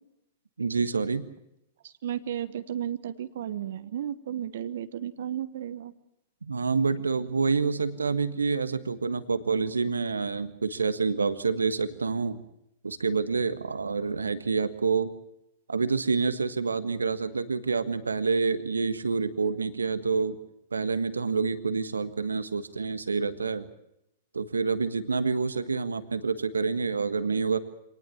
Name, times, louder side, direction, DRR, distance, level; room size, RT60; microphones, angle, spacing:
voice 1, 0.6-1.3 6.4-12.4 12.8-15.1 15.7-20.4 20.7-23.7 24.3-27.6, right 4 dB, 80° right, 12 dB, 1.5 m, -27 dB
voice 2, 1.8-5.9, right 10 dB, 60° right, 13 dB, 1.2 m, -34 dB
25.0 x 19.0 x 7.2 m, 0.82 s
figure-of-eight pair, 105°, 0 cm